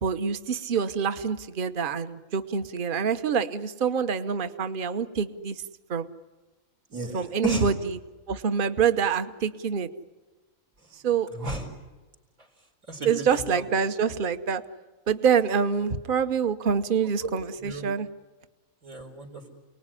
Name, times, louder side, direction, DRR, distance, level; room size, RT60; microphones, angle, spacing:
voice 1, 0.0-5.6 5.9-6.1 7.1-7.7 8.3-9.9 11.0-11.3 13.0-14.6 15.1-18.1, right 6 dB, 40° right, 10 dB, 1.1 m, -26 dB
voice 2, 6.9-7.7 11.3-11.7 12.9-13.2 13.5-13.6 17.2-17.3 17.6-17.8 18.8-19.5, right 2 dB, 70° right, 4 dB, 4.8 m, -33 dB
29.0 x 20.0 x 9.9 m, 1.2 s
omnidirectional pair, 1.5 m